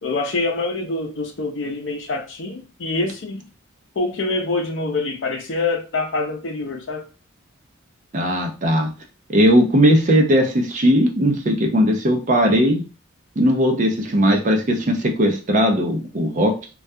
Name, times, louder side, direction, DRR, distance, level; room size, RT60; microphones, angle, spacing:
voice 1, 0.0-3.5 4.0-7.0, left 3 dB, 65° left, 4 dB, 0.5 m, -25 dB
voice 2, 8.1-8.9 9.3-12.8 13.4-16.5, equal, 40° right, 3 dB, 0.5 m, -18 dB
2.3 x 2.2 x 2.6 m, 0.33 s
head